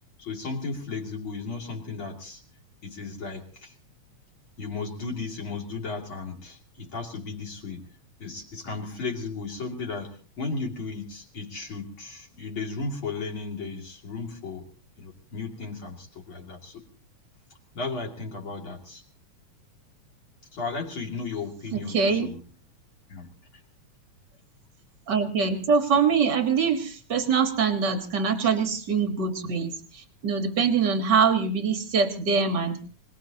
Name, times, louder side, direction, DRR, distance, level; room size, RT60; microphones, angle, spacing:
voice 1, 0.2-2.4 2.8-3.7 4.6-7.8 8.2-14.7 15.0-16.9 17.7-19.0 20.5-22.4 23.1-23.3, left 4 dB, 40° left, 1 dB, 3.0 m, -35 dB
voice 2, 21.7-22.3 25.1-32.8, right 5 dB, 45° right, 7 dB, 1.5 m, -24 dB
25.5 x 18.5 x 2.8 m, 0.37 s
omnidirectional pair, 3.6 m